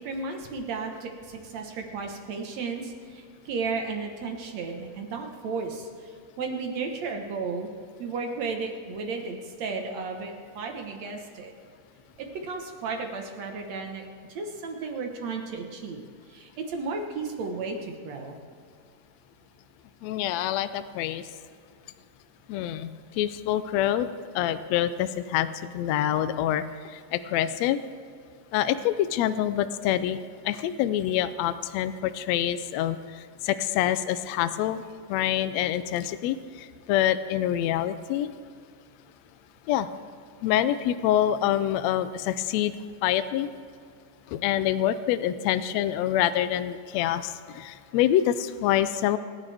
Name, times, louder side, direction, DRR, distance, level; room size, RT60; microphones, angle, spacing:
voice 1, 0.0-7.7 8.0-11.5 12.2-16.0 16.3-18.4, right 4 dB, 60° right, 3 dB, 2.3 m, -34 dB
voice 2, 20.0-21.2 22.5-24.1 24.3-27.8 28.5-30.2 30.4-34.8 35.1-38.3 39.7-39.9 40.4-42.7 43.0-43.5 44.3-49.2, left 11 dB, 90° left, 12 dB, 1.5 m, -26 dB
27.0 x 10.5 x 3.5 m, 2.2 s
omnidirectional pair, 3.8 m